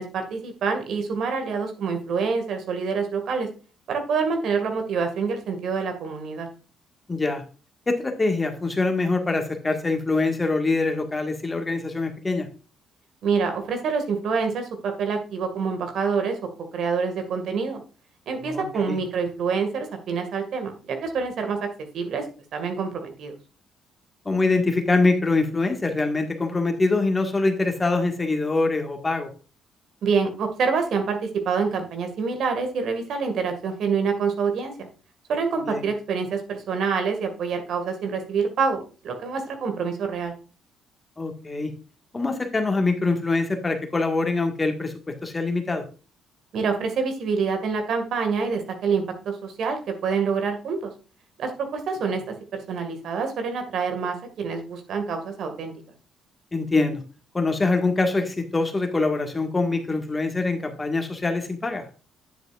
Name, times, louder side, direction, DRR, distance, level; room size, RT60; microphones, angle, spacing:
voice 1, 0.0-3.5 3.9-6.5 13.2-16.4 16.7-17.8 18.3-21.7 21.9-22.2 22.5-23.3 30.0-34.9 35.3-40.3 46.5-50.9 51.4-52.2 52.5-55.7, right 5 dB, 65° right, 5 dB, 2.0 m, -26 dB
voice 2, 7.1-7.4 7.9-12.5 18.4-19.0 24.3-29.3 35.7-35.8 41.2-41.7 42.1-44.9 45.2-45.9 56.5-57.0 57.3-61.9, left 3 dB, 25° left, 5 dB, 1.8 m, -24 dB
9.4 x 7.8 x 2.5 m, 0.35 s
hypercardioid pair, 55°, 0 cm